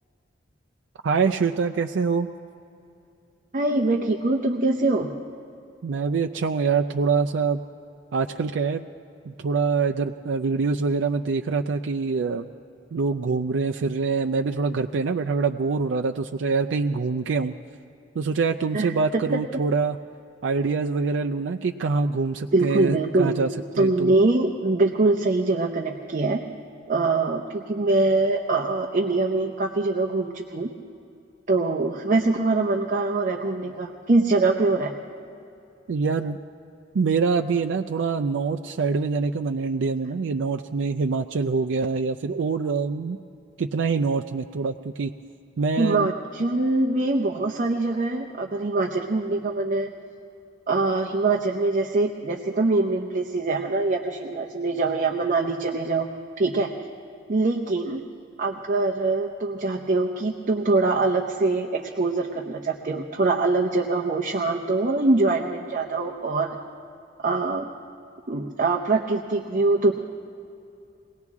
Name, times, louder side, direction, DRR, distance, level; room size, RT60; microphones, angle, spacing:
voice 1, 1.0-2.3 5.8-7.6 8.1-8.8 9.3-12.5 12.9-17.5 18.2-20.0 20.4-23.5 23.8-24.1 35.9-36.4 36.9-43.2 43.6-45.1 45.6-46.1, right 4 dB, 90° right, 3 dB, 0.4 m, -25 dB
voice 2, 3.5-5.2 18.7-18.9 22.5-23.3 23.8-26.4 26.9-30.7 31.5-34.9 45.8-49.9 50.7-56.1 56.4-56.7 57.3-58.0 58.4-66.6 67.2-67.7 68.3-69.9, right 3 dB, 45° right, 2 dB, 0.8 m, -23 dB
22.5 x 18.0 x 3.6 m, 2.6 s
head